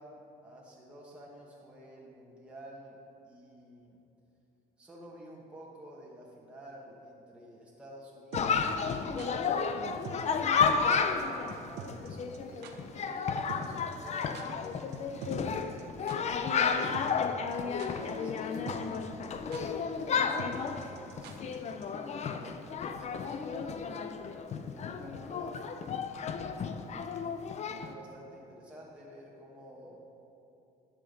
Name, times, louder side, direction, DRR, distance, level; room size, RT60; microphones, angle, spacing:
voice 1, 0.0-3.0 3.2-4.0 4.8-10.3 11.3-15.4 16.0-19.1 20.4-24.0 24.7-25.8 26.9-30.0, equal, 5° right, -5 dB, 1.4 m, -51 dB
Chatter, 8.3-27.9, left 5 dB, 40° left, 0.5 m, -32 dB
sound 1, 8.3-9.3 10.0-10.4 10.6-10.7 10.9-11.2 11.5-11.6 11.8-12.1 12.3-12.4 12.6-12.7 13.5-14.7 14.9-15.0 15.2-15.8 16.1-16.2 16.9-17.3 17.5-18.1 18.4-18.5 18.7-19.0 19.2-19.3 19.5-19.6 20.4-21.6 21.8-21.9, right 6 dB, 80° right, 0.9 m, -44 dB
11.0 x 5.9 x 5.3 m, 2.8 s
cardioid pair, 110°, 17 cm